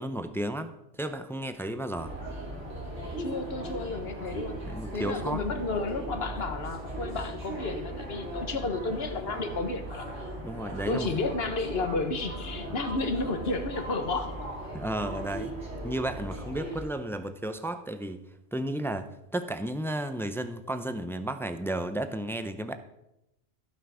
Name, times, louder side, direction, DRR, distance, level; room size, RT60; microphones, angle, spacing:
voice 1, 0.0-2.1 4.7-5.4 10.4-11.1 12.7-12.8 14.7-15.5 15.8-18.2 18.5-22.8, right 1 dB, 5° left, 9 dB, 0.4 m, -33 dB
sound 1, 1.9-16.8, right 1 dB, 90° right, 2.9 m, -38 dB
voice 2, 3.2-4.7 4.9-10.1 10.9-14.5, left 3 dB, 65° left, 7 dB, 1.4 m, -32 dB
15.5 x 5.9 x 4.9 m, 0.88 s
omnidirectional pair, 1.1 m